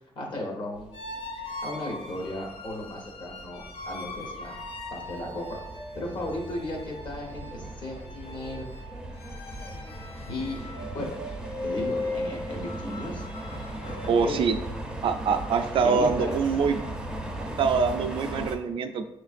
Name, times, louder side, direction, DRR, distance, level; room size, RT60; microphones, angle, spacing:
voice 1, 0.1-0.9 1.6-4.6 4.9-5.6 5.9-8.7 10.3-10.6 10.9-11.2 11.6-13.2 13.9-14.5 15.8-16.7, left 1 dB, 55° left, 0 dB, 1.1 m, -35 dB
sound 1, 0.7-18.6, right 1 dB, 5° right, 0.5 m, -38 dB
sound 2, 0.9-14.4, left 2 dB, 85° left, 0.5 m, -39 dB
voice 2, 14.1-14.6 15.0-16.8 17.4-19.1, right 5 dB, 65° right, 7 dB, 0.4 m, -24 dB
5.7 x 3.1 x 2.5 m, 0.93 s
wide cardioid pair, 150°, 10 cm